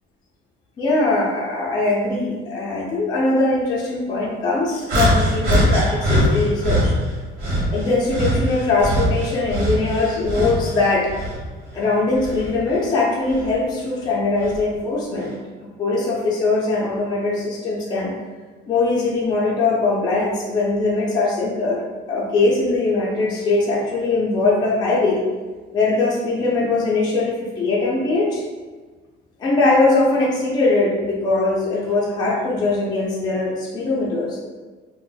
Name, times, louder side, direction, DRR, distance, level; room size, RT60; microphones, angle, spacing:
voice 1, 0.8-6.9 7.7-11.1 11.7-15.3 15.6-18.1 18.7-25.3 25.7-28.4 29.4-34.4, left 3 dB, 25° left, -5 dB, 0.4 m, -21 dB
sound 1, 4.9-6.9 7.4-10.7 11.1-12.5 13.3-13.5 14.4-14.6, equal, 50° right, 0.9 m, -21 dB
2.5 x 2.0 x 3.8 m, 1.4 s
cardioid pair, 175°, 18 cm